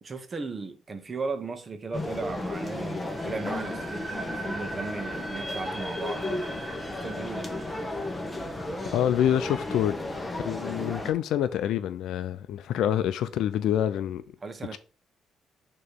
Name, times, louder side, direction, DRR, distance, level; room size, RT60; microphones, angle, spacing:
voice 1, 0.0-6.2 6.8-7.5 14.4-14.8, right 4 dB, 35° right, 1.0 m, -36 dB
sound 1, 1.9-11.1, left 1 dB, 15° left, 1.4 m, -34 dB
sound 2, 3.0-9.9, right 1 dB, ahead, 1.8 m, -41 dB
voice 2, 8.9-9.9 10.4-14.2 14.7-14.8, left 10 dB, 80° left, 0.4 m, -26 dB
6.6 x 3.0 x 5.4 m
cardioid pair, 90°, 0 cm